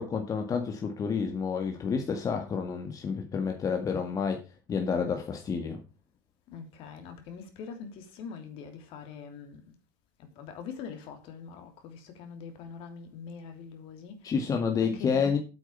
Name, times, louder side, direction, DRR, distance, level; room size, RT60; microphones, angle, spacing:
voice 1, 0.0-4.4 4.7-5.8 14.2-15.4, left 6 dB, 35° left, 1.9 m, -29 dB
voice 2, 6.5-9.7 10.2-14.3 14.8-15.4, left 6 dB, 60° left, 3.1 m, -43 dB
8.6 x 8.1 x 5.6 m
hypercardioid pair, 85°, 10 cm